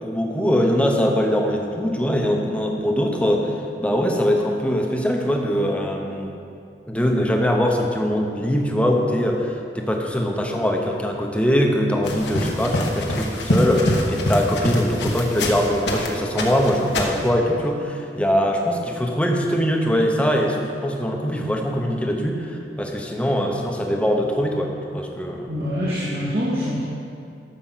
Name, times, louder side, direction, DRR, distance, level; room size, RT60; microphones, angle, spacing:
voice 1, 0.0-6.3 6.9-25.5, equal, 5° left, 1 dB, 1.0 m, -22 dB
sound 1, 12.0-16.1 16.4-17.3, left 1 dB, 75° left, 1.4 m, -24 dB
voice 2, 25.5-26.8, equal, 60° right, -9 dB, 2.3 m, -24 dB
13.0 x 6.6 x 5.8 m, 2.5 s
head